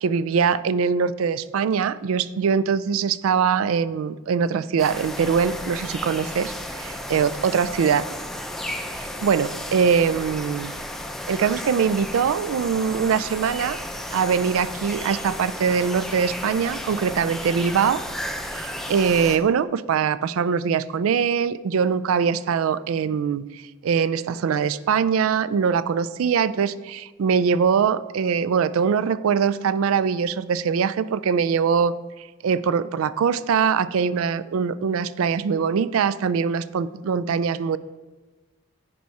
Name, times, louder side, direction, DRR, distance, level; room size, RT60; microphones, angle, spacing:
voice 1, 0.0-8.0 9.0-10.7 11.3-13.8 14.1-18.0 18.5-31.9 32.4-37.8, right 6 dB, 90° right, 16 dB, 0.3 m, -22 dB
sound 1, 4.8-19.4, equal, ahead, 0.4 m, -33 dB
10.5 x 4.8 x 4.1 m, 1.3 s
head